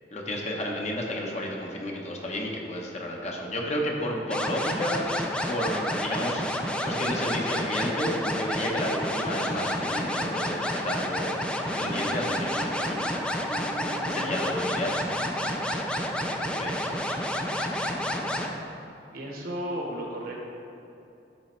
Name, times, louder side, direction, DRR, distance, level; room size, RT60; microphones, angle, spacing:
voice 1, 0.1-6.4 6.8-11.4 11.7-13.5 14.1-15.0 16.6-16.9, equal, 40° left, 0 dB, 0.9 m, -32 dB
sound 1, 4.3-18.5, left 1 dB, 5° left, 0.4 m, -30 dB
Wind instrument woodwind instrument, 10.6-10.8 11.1-11.3 11.6-16.8, equal, 15° right, 0.9 m, -42 dB
voice 2, 19.1-20.4, equal, 55° right, -1 dB, 1.2 m, -33 dB
10.0 x 4.1 x 4.4 m, 2.8 s
head